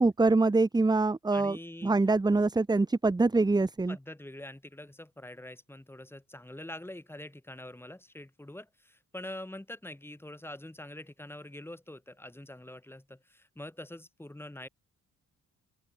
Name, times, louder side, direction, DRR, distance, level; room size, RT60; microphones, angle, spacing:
voice 1, 0.0-4.0, right 3 dB, 15° right, 1.1 m, -25 dB
voice 2, 1.3-2.0 3.9-14.7, left 1 dB, 5° left, 5.5 m, -45 dB
open air
cardioid pair, 90°, 30 cm